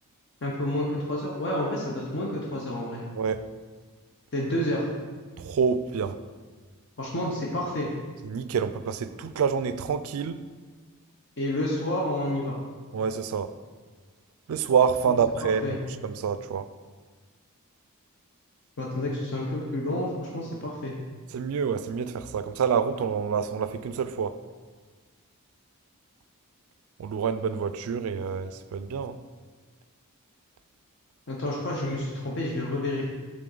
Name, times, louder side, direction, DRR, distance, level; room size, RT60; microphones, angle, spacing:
voice 1, 0.4-3.0 4.3-4.9 7.0-7.9 11.4-12.6 15.6-15.8 18.8-21.0 31.3-33.0, left 1 dB, 55° left, 0.7 m, -29 dB
voice 2, 3.1-3.5 5.4-6.2 8.2-10.4 12.9-13.5 14.5-16.7 21.3-24.4 27.0-29.2, right 6 dB, 70° right, 0.3 m, -27 dB
6.7 x 3.6 x 3.9 m
head